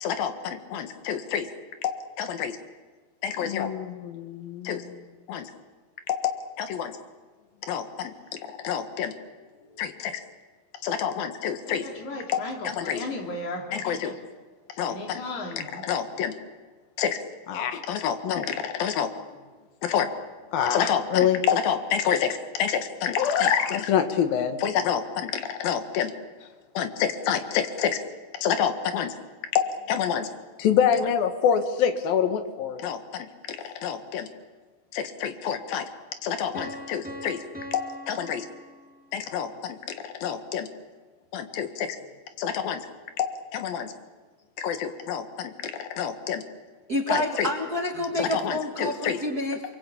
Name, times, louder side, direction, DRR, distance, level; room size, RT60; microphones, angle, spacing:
voice 1, 0.0-1.5 1.8-2.6 3.2-5.0 5.3-5.5 6.1-7.0 7.6-9.1 9.8-10.2 10.8-11.9 12.3-13.0 13.7-14.1 14.8-15.2 15.8-16.3 17.0-17.2 17.5-19.1 19.8-20.1 20.5-26.1 26.7-28.0 28.4-29.1 29.5-30.3 30.6-34.3 34.9-35.9 36.2-37.4 37.7-38.5 39.1-40.7 41.3-42.0 42.4-42.9 43.2-43.9 44.6-46.4 47.1-47.5 48.2-49.2, left 8 dB, 70° left, 8 dB, 3.3 m, -27 dB
voice 2, 9.3-10.2 11.6-14.1 14.9-16.0, left 2 dB, 50° left, 1 dB, 4.7 m, -37 dB
Piano, 36.5-39.3, equal, 5° right, 1.7 m, -42 dB
voice 3, 46.9-49.7, left 1 dB, 35° right, 2 dB, 1.6 m, -28 dB
29.0 x 22.5 x 8.6 m, 1.4 s
omnidirectional pair, 4.4 m